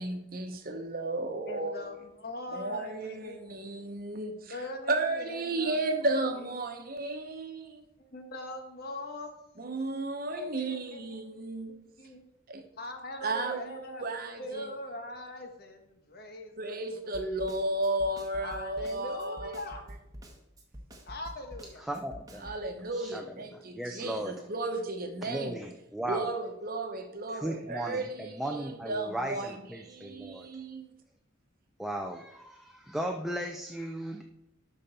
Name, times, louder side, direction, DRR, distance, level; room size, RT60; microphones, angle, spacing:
voice 1, 0.0-1.9 2.5-4.5 4.9-7.8 9.6-11.7 12.5-12.7 13.2-14.7 16.6-19.6 22.4-25.5 26.1-30.9, right 2 dB, 45° right, 1.1 m, -34 dB
voice 2, 1.5-3.6 4.5-5.8 6.4-6.6 8.0-10.0 10.3-11.2 12.0-12.2 12.8-14.0 14.4-17.0 18.4-19.8 21.0-21.9, left 1 dB, 50° left, 1.3 m, -42 dB
Snare drum, 17.1-22.6, equal, 20° right, 1.1 m, -47 dB
voice 3, 21.8-22.5 22.9-24.3 25.2-26.3 27.3-30.5 31.8-34.2, right 1 dB, ahead, 0.5 m, -36 dB
12.0 x 5.3 x 4.3 m
head